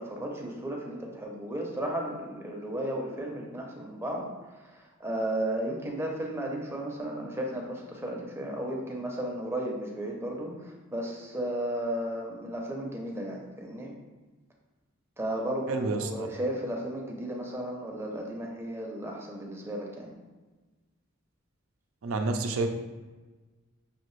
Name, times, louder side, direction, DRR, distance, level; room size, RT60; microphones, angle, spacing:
voice 1, 0.0-13.9 15.2-20.1, right 1 dB, 10° right, -1 dB, 0.6 m, -34 dB
voice 2, 15.7-16.3 22.0-22.7, right 3 dB, 85° right, 5 dB, 0.5 m, -29 dB
5.6 x 2.5 x 3.1 m, 1.2 s
head